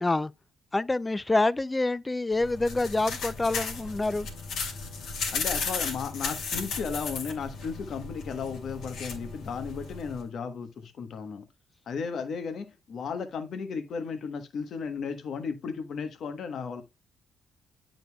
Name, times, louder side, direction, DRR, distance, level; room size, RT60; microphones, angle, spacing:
voice 1, 0.0-0.3 0.7-4.3, left 2 dB, 15° left, 0.3 m, -26 dB
sound 1, 2.3-10.2, left 4 dB, 80° left, 2.6 m, -35 dB
voice 2, 5.3-11.5 11.9-16.8, left 5 dB, 60° left, 1.1 m, -35 dB
9.1 x 5.2 x 2.3 m
cardioid pair, 90°, 0 cm